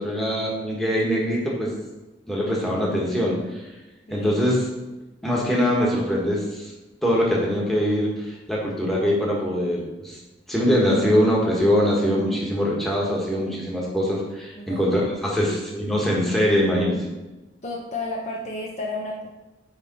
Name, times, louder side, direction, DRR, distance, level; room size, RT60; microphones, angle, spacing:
voice 1, 0.0-1.7 2.3-3.7 4.1-4.6 5.2-6.7 7.0-10.2 10.5-17.0, equal, ahead, -4 dB, 1.4 m, -23 dB
voice 2, 4.1-4.5 14.6-14.9 15.3-15.5 17.6-19.3, left 2 dB, 40° left, -1 dB, 0.7 m, -32 dB
9.9 x 3.4 x 4.1 m, 1.1 s
head